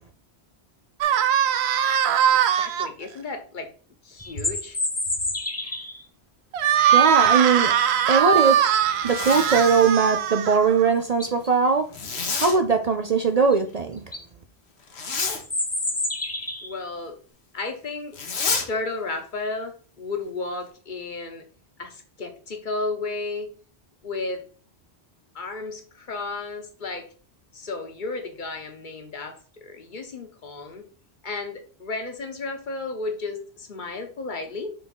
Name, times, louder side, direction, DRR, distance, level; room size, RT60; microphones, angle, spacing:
sound 1, 1.0-2.9 6.5-10.9, right 9 dB, 80° right, 0.8 m, -21 dB
voice 1, 2.3-3.7 4.0-4.8 16.6-17.2 17.5-18.2 18.7-21.4 21.8-23.5 24.0-24.4 25.3-27.1 27.5-30.9 31.2-34.7, left 3 dB, 50° left, 1.2 m, -33 dB
sound 2, 4.2-6.0 10.5-10.6 11.0-11.5 13.5-13.6 14.0-14.2 15.4-16.8, left 2 dB, 15° left, 0.7 m, -29 dB
voice 2, 6.8-7.7 8.1-8.6 9.0-11.8 12.4-14.0, right 5 dB, 45° right, 0.6 m, -20 dB
Zipper (clothing), 8.9-9.9 11.9-12.6 14.9-15.4 18.1-18.7, left 4 dB, 80° left, 1.3 m, -29 dB
4.7 x 3.8 x 5.3 m
omnidirectional pair, 1.1 m